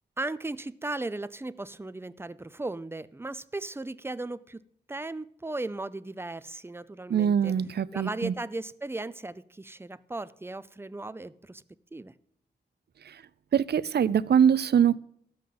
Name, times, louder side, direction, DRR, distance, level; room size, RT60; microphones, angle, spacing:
voice 1, 0.2-4.6 4.9-7.5 7.9-11.6 11.9-12.1, right 2 dB, 15° right, 0.5 m, -36 dB
voice 2, 7.1-8.3 13.1-13.2 13.5-15.0, right 8 dB, 65° right, 0.4 m, -23 dB
13.0 x 5.5 x 7.7 m
cardioid pair, 60°, 18 cm